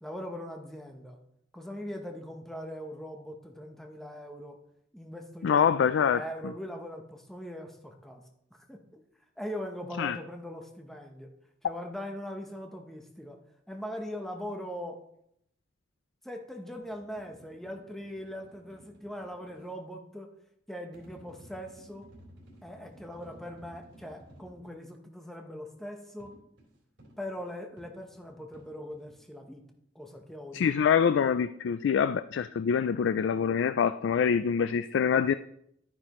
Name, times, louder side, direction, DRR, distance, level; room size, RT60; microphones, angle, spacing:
voice 1, 0.0-1.2 1.5-4.6 4.9-8.2 8.7-9.0 9.4-11.3 11.6-13.4 13.7-15.0 16.2-20.3 20.7-22.1 22.6-26.3 27.2-29.6 29.9-30.7, equal, ahead, 2 dB, 1.0 m, -41 dB
voice 2, 5.4-6.2 10.0-10.2 30.5-35.3, left 7 dB, 85° left, 13 dB, 0.3 m, -25 dB
sound 1, 16.8-19.6 20.9-24.7 26.2-29.2, right 1 dB, 75° right, 3.8 m, -55 dB
11.5 x 9.8 x 3.1 m, 0.74 s
head